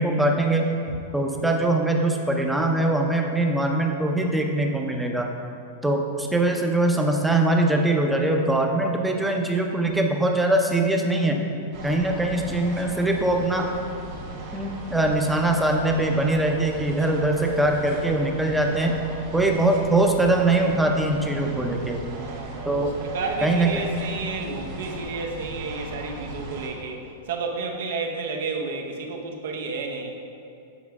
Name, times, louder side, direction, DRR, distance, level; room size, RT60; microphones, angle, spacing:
voice 1, 0.0-5.3 5.8-11.4 11.8-13.7 14.5-18.9 19.3-22.0 22.6-22.9 23.4-23.8, right 2 dB, 5° right, 2 dB, 0.5 m, -22 dB
sound 1, 11.7-26.7, right 2 dB, 55° right, 1.4 m, -37 dB
voice 2, 22.0-30.2, right 4 dB, 75° right, 3 dB, 0.7 m, -31 dB
7.1 x 4.4 x 3.5 m, 2.6 s
supercardioid pair, 140°, 0 cm